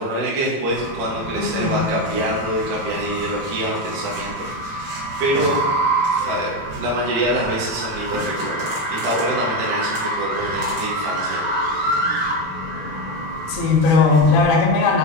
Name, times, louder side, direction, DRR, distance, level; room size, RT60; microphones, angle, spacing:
voice 1, 0.0-5.6 6.2-12.0, right 1 dB, 80° right, -5 dB, 1.9 m, -25 dB
sound 1, 0.7-14.4, right 1 dB, 60° right, 1.9 m, -26 dB
voice 2, 1.4-1.8 13.5-15.0, left 4 dB, 75° left, -3 dB, 3.1 m, -17 dB
6.8 x 5.1 x 2.8 m, 1.2 s
omnidirectional pair, 5.6 m